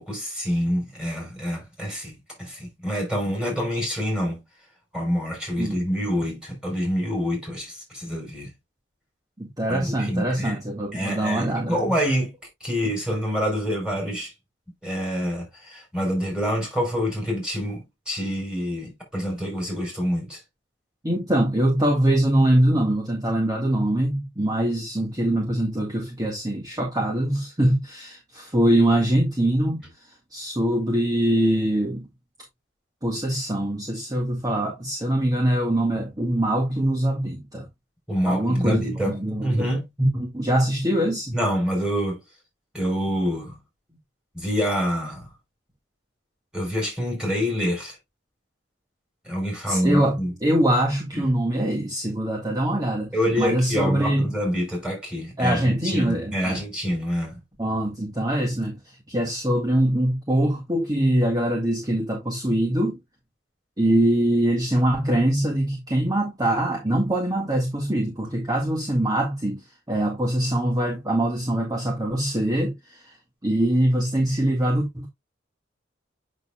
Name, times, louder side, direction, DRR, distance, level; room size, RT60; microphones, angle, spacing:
voice 1, 0.0-4.4 4.9-8.5 9.7-10.6 10.9-12.3 12.6-14.3 14.8-20.4 38.1-39.2 39.4-39.9 41.3-42.2 42.7-43.6 44.3-45.3 46.5-48.0 49.3-50.3 51.1-51.2 53.1-57.4, equal, 5° right, 5.3 m, -26 dB
voice 2, 9.4-11.8 21.0-29.8 30.3-32.1 33.0-37.7 38.2-39.7 40.0-41.4 49.7-53.1 53.4-54.3 55.4-56.6 57.6-63.0 63.8-69.6 69.9-73.1 73.4-75.1, right 1 dB, 20° right, 1.8 m, -23 dB
8.1 x 6.6 x 2.3 m
head